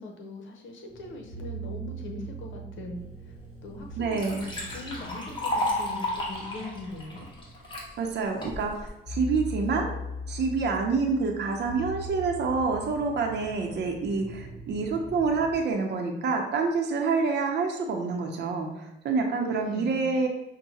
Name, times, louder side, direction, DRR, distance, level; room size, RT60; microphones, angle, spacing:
voice 1, 0.0-3.3 3.6-4.4 4.7-7.3 19.4-20.2, left 2 dB, 75° left, 2 dB, 0.8 m, -41 dB
sound 1, 0.9-15.5, equal, ahead, 1.2 m, -41 dB
Liquid, 3.4-3.5 3.8-7.9 8.4-8.9, left 1 dB, 25° left, 1.3 m, -32 dB
voice 2, 4.0-4.5 8.0-10.0 10.3-20.3, right 4 dB, 60° right, 2 dB, 0.7 m, -27 dB
5.6 x 2.2 x 2.7 m, 0.96 s
cardioid pair, 90°, 20 cm